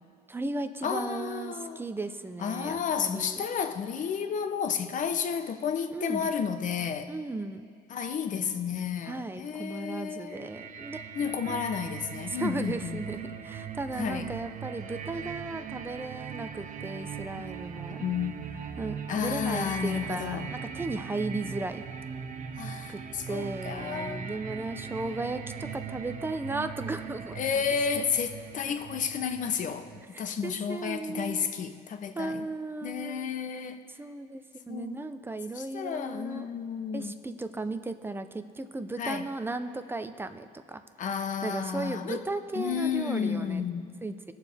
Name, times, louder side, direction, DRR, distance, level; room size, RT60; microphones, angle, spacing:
voice 1, 0.3-3.4 5.9-6.3 7.1-7.7 9.1-11.0 11.5-11.7 12.3-18.0 18.8-21.8 22.9-23.0 23.3-27.4 28.0-28.1 30.1-31.5 32.2-33.3 34.0-36.5 36.9-40.8 41.4-43.6 44.0-44.3, right 2 dB, 15° right, 9 dB, 0.7 m, -36 dB
voice 2, 0.8-1.8 2.4-7.1 7.9-10.5 11.1-13.0 14.0-14.2 17.4-17.5 18.0-18.4 19.1-20.5 22.6-24.3 27.3-32.5 32.8-33.8 34.7-35.1 35.5-37.1 39.0-39.2 41.0-42.2 42.5-44.0, left 7 dB, 50° left, 8 dB, 0.9 m, -32 dB
sound 1, 10.3-30.0, right 7 dB, 50° right, 0.7 m, -40 dB
20.5 x 7.0 x 3.5 m, 2.4 s
cardioid pair, 110°, 17 cm